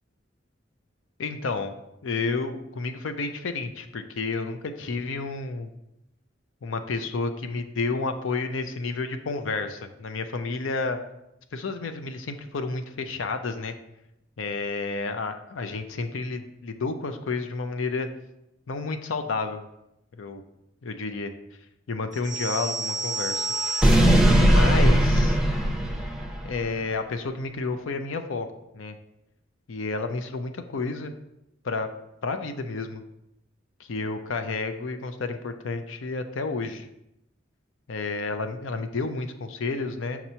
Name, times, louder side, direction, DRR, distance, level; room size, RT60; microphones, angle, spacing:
voice 1, 1.2-1.7 2.0-5.7 6.6-11.0 11.5-13.7 14.4-18.1 18.7-19.6 20.2-20.4 20.8-21.3 21.9-23.5 24.4-25.4 26.4-28.5 28.7-29.0 29.7-31.1 31.6-31.9 32.2-33.0 33.8-36.9 37.9-40.2, left 3 dB, 80° left, 8 dB, 0.5 m, -30 dB
sound 1, 22.2-26.6, right 1 dB, 5° right, 0.6 m, -21 dB
5.9 x 2.9 x 5.4 m, 0.85 s
head